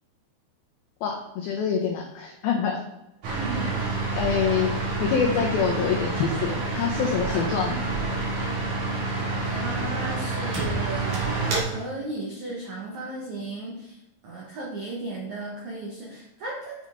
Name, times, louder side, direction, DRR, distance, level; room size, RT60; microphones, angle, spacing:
voice 1, 1.0-2.8 4.1-4.7 5.0-7.8, left 6 dB, 90° left, 1 dB, 2.1 m, -25 dB
sound 1, 3.2-11.6, right 3 dB, 50° right, 2.8 m, -28 dB
voice 2, 3.4-3.9 7.3-7.7 9.4-13.7 14.2-16.7, right 2 dB, 80° right, -3 dB, 1.6 m, -35 dB
7.9 x 5.6 x 3.6 m, 0.93 s
omnidirectional pair, 5.4 m